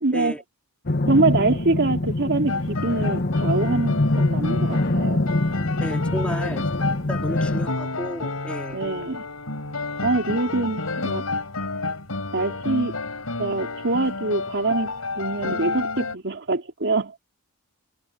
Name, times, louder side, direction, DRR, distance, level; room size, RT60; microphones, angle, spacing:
voice 1, 0.0-0.4 1.1-5.3 6.4-6.6 8.7-9.2 10.0-11.3 12.3-13.0 13.4-17.3, right 2 dB, 55° right, 3.0 m, -24 dB
sound 1, 0.9-7.7, left 2 dB, 50° left, 1.5 m, -24 dB
sound 2, 2.5-16.2, left 3 dB, 80° left, 4.7 m, -30 dB
voice 2, 5.8-6.6 7.1-8.8, equal, 5° left, 3.4 m, -32 dB
head